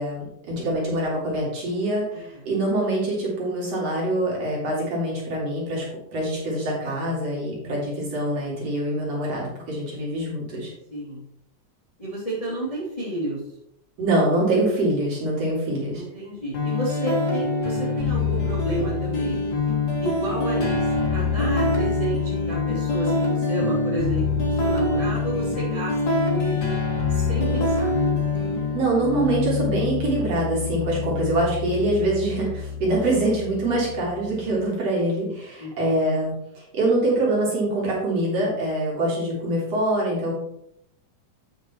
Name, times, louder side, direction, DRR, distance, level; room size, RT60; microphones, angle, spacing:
voice 1, 0.0-5.9 6.1-10.7 14.0-16.0 28.7-40.3, right 1 dB, 50° right, -4 dB, 3.5 m, -24 dB
voice 2, 10.9-11.2 12.0-13.4 15.9-19.4 20.0-26.7 27.1-27.9 35.6-35.7, right 1 dB, 15° left, -5 dB, 1.8 m, -31 dB
sound 1, 16.5-34.5, left 3 dB, 45° left, 1.4 m, -25 dB
8.8 x 5.9 x 4.3 m, 0.75 s
omnidirectional pair, 3.7 m